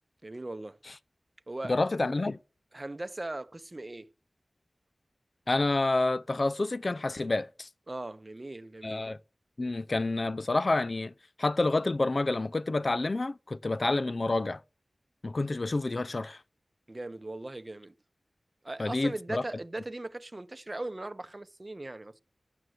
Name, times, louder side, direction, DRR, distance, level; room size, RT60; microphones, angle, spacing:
voice 1, 0.2-0.8 1.5-1.7 2.7-4.1 7.9-9.0 16.9-17.9 18.6-22.1, right 2 dB, 35° right, 0.8 m, -39 dB
voice 2, 1.7-2.4 5.5-7.7 8.8-9.2 9.6-11.1 11.4-14.6 15.2-16.4 18.8-19.4, left 2 dB, 50° left, 0.5 m, -28 dB
11.0 x 7.8 x 7.9 m
wide cardioid pair, 70°, 0 cm